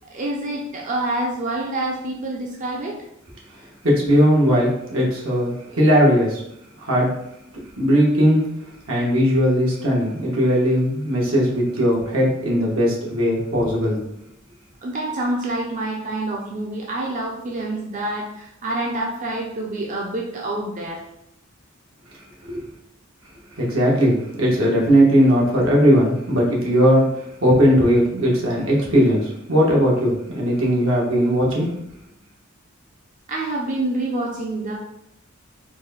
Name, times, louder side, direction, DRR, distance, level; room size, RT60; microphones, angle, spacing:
voice 1, 0.1-3.0 14.8-21.0 33.3-34.7, right 2 dB, 40° right, -2 dB, 0.6 m, -27 dB
voice 2, 3.5-6.4 6.8-7.2 7.8-8.5 8.9-14.0 22.4-22.7 23.5-31.7, equal, 80° right, -4 dB, 1.4 m, -18 dB
4.7 x 2.3 x 4.1 m, 0.78 s
head